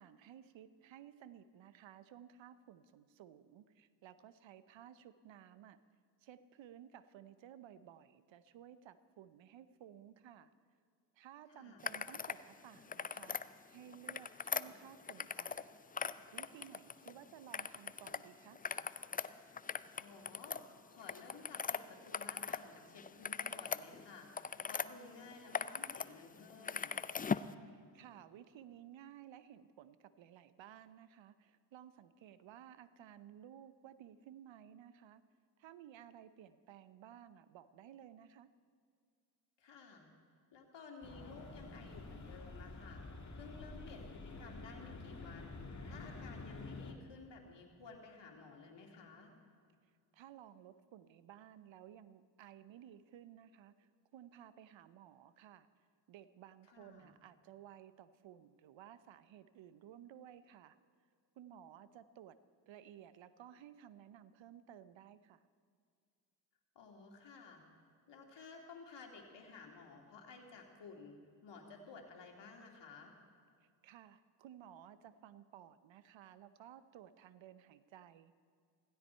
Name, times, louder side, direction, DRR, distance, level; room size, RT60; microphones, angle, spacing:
voice 1, 0.0-5.8 6.2-10.5 11.1-15.7 16.0-18.6 27.7-35.2 35.6-38.5 50.1-55.7 56.1-60.8 61.4-62.4 62.7-65.4 73.6-78.3, right 10 dB, 70° right, 14 dB, 0.8 m, -56 dB
voice 2, 11.5-11.8 19.7-26.9 39.6-40.1 40.5-43.0 43.3-49.3 56.7-57.1 66.7-67.6 68.1-73.1, left 4 dB, 60° left, 2 dB, 2.6 m, -55 dB
sound 1, 11.8-12.4 12.8-13.4 13.9-15.7 15.9-17.1 17.5-18.2 18.5-22.6 23.0-24.9 25.3-26.1 26.3-27.5, left 6 dB, 20° left, 0.4 m, -40 dB
sound 2, 41.0-46.9, left 3 dB, 35° left, 2.0 m, -49 dB
16.0 x 15.5 x 4.5 m, 2.2 s
supercardioid pair, 55°, 48 cm